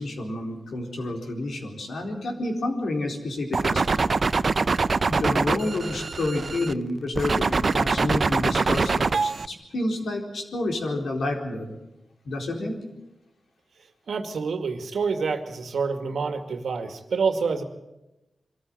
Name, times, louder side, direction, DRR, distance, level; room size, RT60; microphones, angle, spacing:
voice 1, 0.0-3.8 5.1-11.7 12.3-12.8, left 2 dB, 75° left, 2 dB, 4.3 m, -29 dB
sound 1, 3.5-6.7 7.1-9.5, right 4 dB, 50° right, 0.7 m, -23 dB
voice 2, 14.1-17.6, right 5 dB, 85° right, 7 dB, 2.1 m, -27 dB
23.5 x 14.0 x 9.3 m, 0.95 s
wide cardioid pair, 85°, 0 cm